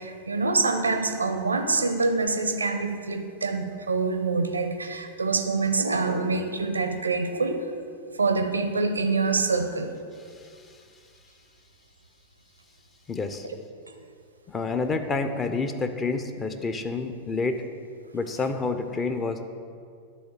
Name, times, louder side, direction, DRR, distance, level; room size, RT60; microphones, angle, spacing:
voice 1, 0.0-7.7 8.1-9.9, right 3 dB, 75° right, 7 dB, 0.5 m, -25 dB
voice 2, 13.1-13.5 14.5-17.6 18.1-19.4, left 4 dB, 20° left, 8 dB, 0.6 m, -28 dB
9.9 x 3.8 x 6.5 m, 2.3 s
figure-of-eight pair, 90°, 0 cm